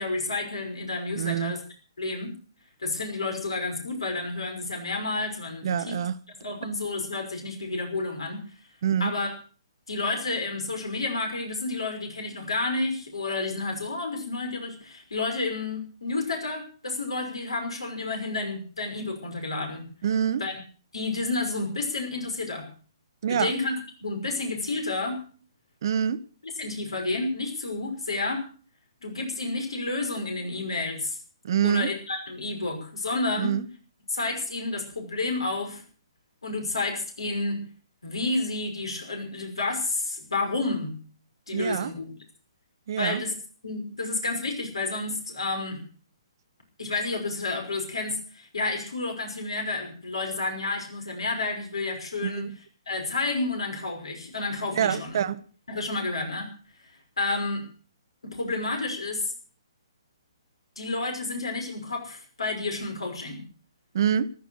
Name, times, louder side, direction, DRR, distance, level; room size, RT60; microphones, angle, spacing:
voice 1, 0.0-1.6 2.0-2.3 2.8-5.9 6.4-8.4 9.0-9.3 9.9-19.9 20.4-20.5 20.9-22.7 23.3-23.7 24.0-25.2 26.6-28.5 29.0-31.2 31.6-33.6 34.1-35.8 36.4-37.6 38.0-41.0 41.5-42.1 43.0-43.3 43.6-45.8 46.8-52.4 52.9-55.2 55.7-56.5 57.2-57.7 58.2-59.2 60.8-63.4, left 3 dB, 80° left, 5.7 m, -30 dB
voice 2, 1.2-1.5 5.6-6.2 8.8-9.1 20.0-20.4 23.2-23.6 25.8-26.2 31.4-31.9 33.4-33.7 41.5-41.9 42.9-43.2 52.2-52.5 54.8-55.4 63.9-64.3, right 9 dB, 50° right, 0.9 m, -26 dB
14.5 x 12.5 x 6.5 m
figure-of-eight pair, 135°, 3 cm